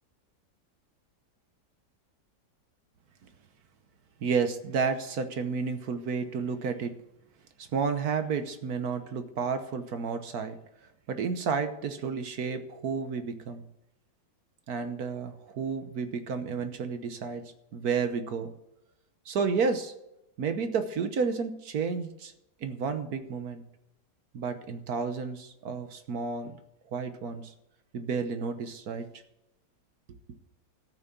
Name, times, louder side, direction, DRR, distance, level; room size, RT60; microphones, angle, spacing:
voice 1, 4.2-7.0 7.6-10.6 11.1-13.6 14.7-17.4 17.7-18.5 19.3-19.9 20.4-22.3 22.6-23.6 24.3-26.5 26.9-27.5 27.9-29.1, right 5 dB, 65° right, 8 dB, 1.5 m, -31 dB
13.5 x 6.3 x 6.9 m, 0.87 s
omnidirectional pair, 1.8 m